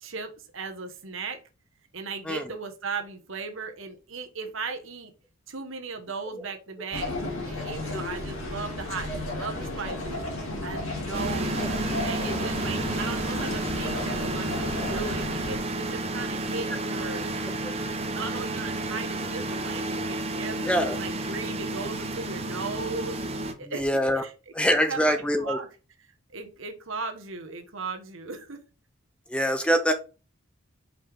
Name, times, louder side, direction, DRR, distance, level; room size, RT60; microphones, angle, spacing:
voice 1, 0.0-1.4 1.9-5.1 5.5-10.2 10.6-11.6 12.0-17.3 18.1-20.7 21.0-23.2 23.6-24.3 24.9-25.7 26.3-28.6, right 4 dB, 65° right, 5 dB, 1.2 m, -37 dB
sound 1, 6.9-15.6, left 2 dB, 75° left, 2.3 m, -33 dB
sound 2, 11.1-23.5, right 2 dB, 30° right, 0.8 m, -31 dB
voice 2, 20.6-21.0 23.7-24.2 24.5-25.6 29.3-29.9, equal, 5° left, 7 dB, 0.6 m, -24 dB
5.3 x 5.3 x 3.5 m, 0.33 s
head